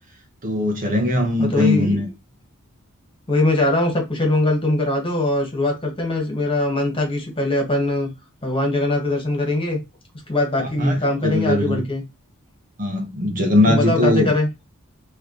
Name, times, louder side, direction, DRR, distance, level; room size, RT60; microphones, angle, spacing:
voice 1, 0.4-2.1 10.6-11.8 12.8-14.3, left 1 dB, 40° right, 1.3 m, -20 dB
voice 2, 1.4-2.0 3.3-8.1 8.4-9.8 10.3-12.0 13.6-14.5, left 2 dB, 25° left, 1.8 m, -21 dB
4.8 x 3.2 x 3.1 m
head